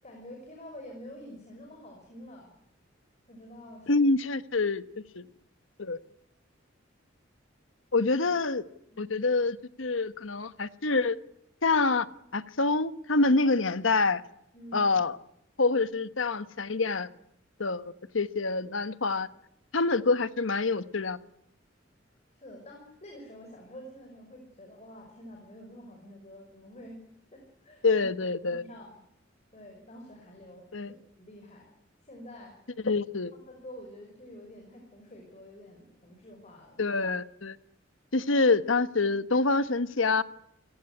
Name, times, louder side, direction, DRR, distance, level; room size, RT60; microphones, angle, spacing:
voice 1, 0.0-2.5 3.3-3.9 8.9-9.1 14.5-14.8 22.3-27.0 27.3-28.1 28.5-29.0 29.5-31.7 32.0-32.5 33.3-36.8, left 1 dB, 35° left, 2 dB, 6.0 m, -48 dB
voice 2, 3.9-4.8 5.1-5.2 5.8-6.0 7.9-8.6 9.0-11.2 11.6-12.1 12.3-14.2 14.7-15.2 15.6-17.1 17.6-19.3 19.7-21.2 27.8-28.6 30.7-30.9 32.8-33.3 36.8-37.6 38.1-40.2, left 3 dB, 85° left, 13 dB, 1.2 m, -26 dB
28.5 x 18.0 x 9.8 m, 0.81 s
head